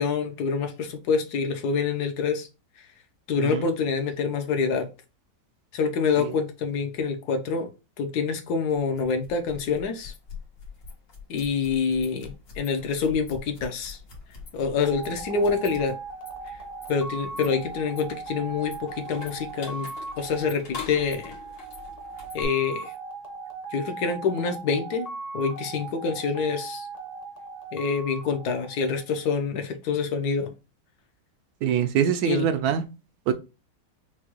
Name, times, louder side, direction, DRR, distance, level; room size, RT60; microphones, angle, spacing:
voice 1, 0.0-2.5 3.3-4.9 5.7-7.7 8.0-10.1 11.3-14.0 14.5-15.9 16.9-19.9 20.2-21.3 22.3-22.9 23.7-26.9 27.7-30.5 32.2-32.4, left 5 dB, 65° left, 1.3 m, -26 dB
sound 1, 8.7-22.4, left 5 dB, 85° left, 2.1 m, -44 dB
sound 2, 14.8-29.3, right 4 dB, 30° left, 0.7 m, -38 dB
voice 2, 31.6-32.8 33.3-33.4, right 9 dB, 70° right, 0.9 m, -24 dB
6.0 x 2.3 x 3.0 m
omnidirectional pair, 1.9 m